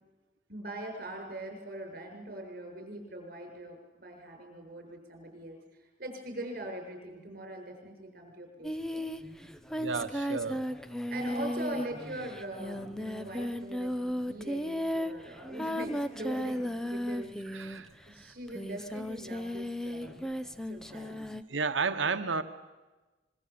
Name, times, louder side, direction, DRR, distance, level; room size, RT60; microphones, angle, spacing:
voice 1, 0.5-5.6 6.0-9.1 11.1-21.2, right 1 dB, 50° right, 4 dB, 7.2 m, -42 dB
Singing, 8.6-18.0 18.5-21.4, equal, 5° left, 0.8 m, -35 dB
voice 2, 9.8-10.6 17.5-17.9 21.5-22.4, right 4 dB, 85° right, 9 dB, 1.2 m, -31 dB
25.5 x 23.0 x 8.6 m, 1.2 s
head